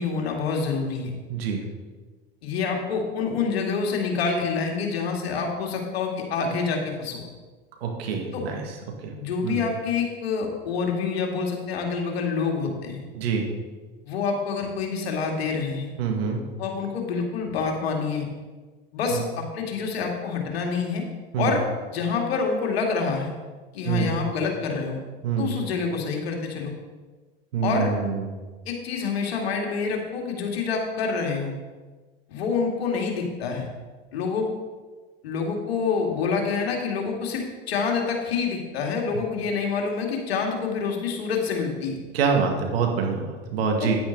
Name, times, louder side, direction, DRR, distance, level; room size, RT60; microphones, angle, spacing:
voice 1, 0.0-1.1 2.4-7.2 8.3-8.4 9.2-13.0 14.0-15.9 16.6-18.3 18.9-21.0 21.4-21.6 21.9-23.3 23.7-25.0 25.4-26.7 27.6-27.9 28.7-31.5 32.3-33.7 34.1-34.5 35.2-42.0 43.8-43.9, left 5 dB, 80° left, 1 dB, 2.3 m, -27 dB
voice 2, 1.3-1.6 7.8-8.6 9.0-9.1 9.4-9.6 13.1-13.4 16.0-16.4 19.1-19.2 21.3-21.5 23.9-24.1 25.2-25.5 27.5-28.3 42.1-44.0, right 6 dB, 75° right, 2 dB, 2.1 m, -25 dB
10.0 x 9.4 x 4.0 m, 1.3 s
hypercardioid pair, 90°, 30 cm